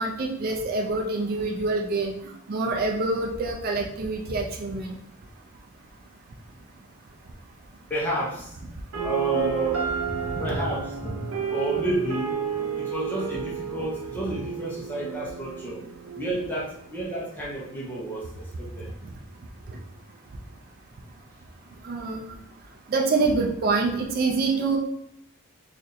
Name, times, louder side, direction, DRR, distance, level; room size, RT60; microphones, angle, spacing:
voice 1, 0.0-2.1 2.5-5.0 21.8-22.3 22.9-24.8, right 3 dB, 45° right, 0 dB, 0.4 m, -26 dB
voice 2, 7.9-8.5 9.0-12.3 12.8-15.8 16.1-18.9, right 1 dB, 10° left, -6 dB, 0.7 m, -31 dB
sound 1, 8.9-16.9, right 6 dB, 75° right, 0.8 m, -32 dB
2.7 x 2.5 x 4.0 m, 0.75 s
head